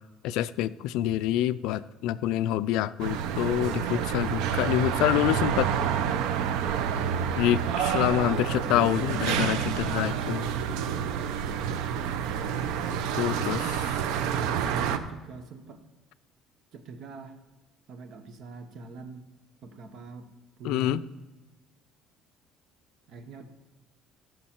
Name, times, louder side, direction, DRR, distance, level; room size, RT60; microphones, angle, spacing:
voice 1, 0.2-5.7 7.3-10.5 12.9-13.6 20.6-21.0, left 13 dB, 75° left, 15 dB, 0.4 m, -27 dB
sound 1, 3.0-15.0, right 8 dB, 85° right, 0.7 m, -28 dB
voice 2, 13.0-13.7 14.4-15.8 16.7-17.4 17.9-19.2 19.6-20.3 20.6-21.1 23.1-23.5, right 5 dB, 50° right, 8 dB, 1.1 m, -43 dB
15.0 x 6.4 x 4.4 m, 1.1 s
cardioid pair, 165°, 0 cm